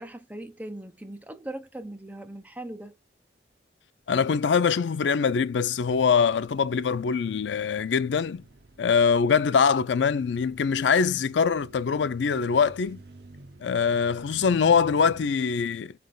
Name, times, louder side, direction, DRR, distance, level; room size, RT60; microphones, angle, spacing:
voice 1, 0.0-3.0, right 1 dB, 10° right, 0.5 m, -39 dB
voice 2, 4.1-8.4 8.8-13.0 13.6-15.9, left 6 dB, 85° left, 0.4 m, -23 dB
sound 1, 5.6-15.3, right 2 dB, 65° right, 0.6 m, -50 dB
4.1 x 3.4 x 3.8 m
head